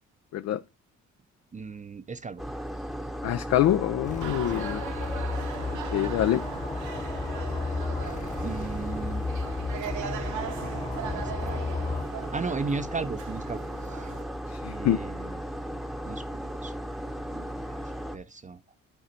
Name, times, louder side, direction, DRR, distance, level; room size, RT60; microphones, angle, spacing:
voice 1, 1.5-2.4 4.5-4.6 8.4-9.2 11.0-11.7 12.3-14.1 14.6-15.4 16.1-16.8 17.3-18.6, right 4 dB, 25° right, 0.6 m, -36 dB
sound 1, 2.4-18.2, equal, ahead, 0.9 m, -36 dB
voice 2, 3.2-4.8 5.9-6.4 14.5-15.0, left 12 dB, 55° left, 0.5 m, -25 dB
sound 2, 4.0-12.0, left 3 dB, 25° left, 1.2 m, -34 dB
sound 3, 4.2-14.2, right 8 dB, 65° right, 1.1 m, -40 dB
9.9 x 4.1 x 4.4 m
supercardioid pair, 60°, 32 cm